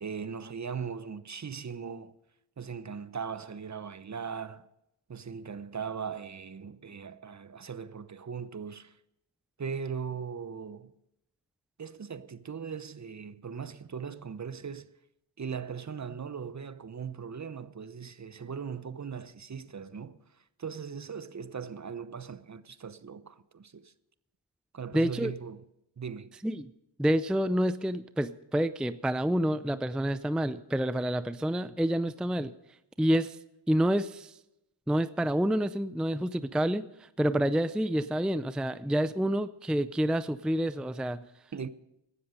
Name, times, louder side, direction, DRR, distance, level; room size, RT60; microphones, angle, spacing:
voice 1, 0.0-2.1 2.6-4.7 5.1-9.0 9.6-10.9 11.8-14.9 15.4-20.2 20.6-23.9 24.7-25.7 26.0-26.3 41.5-41.7, right 6 dB, 35° right, 0.9 m, -39 dB
voice 2, 24.9-25.3 26.4-26.7 27.0-32.5 33.0-33.4 33.7-34.3 34.9-41.2, equal, ahead, 0.5 m, -28 dB
17.0 x 13.0 x 5.2 m
cardioid pair, 75°, 47 cm